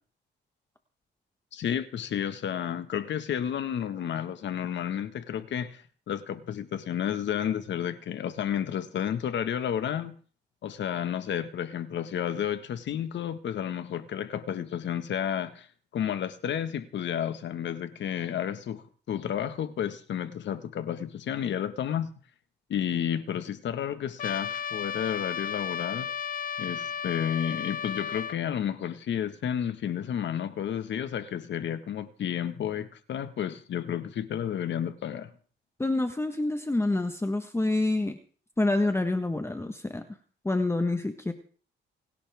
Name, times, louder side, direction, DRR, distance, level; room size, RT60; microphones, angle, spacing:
voice 1, 1.5-10.1 10.6-15.7 15.9-22.1 22.7-26.1 26.6-35.3, left 9 dB, 65° left, 10 dB, 1.7 m, -31 dB
Trumpet, 24.2-28.4, left 7 dB, 45° left, 0.8 m, -34 dB
voice 2, 35.8-38.2 38.6-40.0 40.4-41.3, left 2 dB, 15° left, 7 dB, 1.4 m, -27 dB
28.5 x 11.5 x 3.6 m, 0.44 s
cardioid pair, 90°, 20 cm